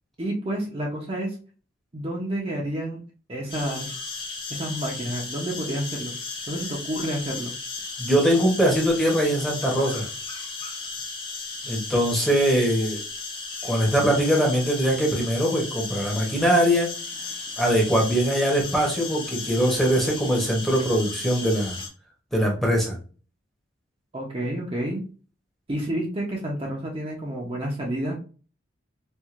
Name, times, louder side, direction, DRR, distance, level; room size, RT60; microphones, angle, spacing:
voice 1, 0.2-1.4 1.9-3.0 3.3-3.9 4.5-6.2 6.5-7.5 24.1-25.0 25.7-28.1, right 1 dB, 30° right, -2 dB, 0.7 m, -29 dB
sound 1, 3.5-21.9, left 4 dB, 25° left, 0.8 m, -35 dB
voice 2, 8.0-10.1 11.6-13.0 13.6-16.9 17.6-21.8 22.3-23.0, equal, ahead, -2 dB, 0.9 m, -22 dB
4.4 x 2.4 x 2.5 m, 0.38 s
head